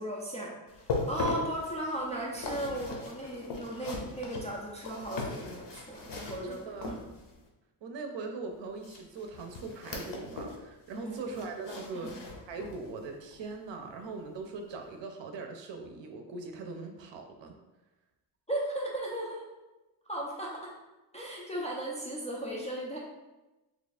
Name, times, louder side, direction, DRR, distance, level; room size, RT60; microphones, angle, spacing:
voice 1, 0.0-7.0 10.9-11.2 11.9-12.2 18.5-19.5 20.1-20.7 21.1-23.0, right 1 dB, 15° left, -5 dB, 0.3 m, -36 dB
sound 1, 0.7-7.4 8.8-10.6 10.9-12.9 13.3-13.5 14.0-14.1, left 3 dB, 60° left, 0.8 m, -39 dB
voice 2, 6.4-7.0 7.8-12.1 12.5-17.5, right 3 dB, 60° right, 4 dB, 0.6 m, -41 dB
3.1 x 2.4 x 4.1 m, 1.1 s
wide cardioid pair, 155°, 49 cm